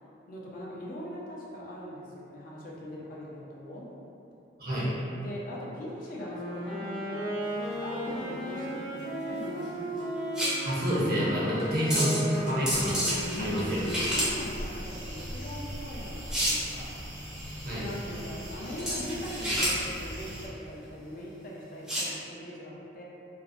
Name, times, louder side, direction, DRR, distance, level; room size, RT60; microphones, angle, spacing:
voice 1, 0.3-3.9 5.2-10.0 13.3-16.9 17.7-23.0, equal, 50° left, -4 dB, 0.4 m, -40 dB
voice 2, 4.6-4.9 10.6-13.0 13.4-13.8 17.6-17.9, equal, 55° right, -8 dB, 0.7 m, -28 dB
Wind instrument woodwind instrument, 6.0-14.1, right 1 dB, 80° left, 0.8 m, -35 dB
sound 1, 7.4-22.1, equal, 5° right, 0.5 m, -33 dB
sound 2, 12.7-20.5, equal, 75° right, 1.0 m, -41 dB
2.4 x 2.0 x 2.5 m, 2.8 s
head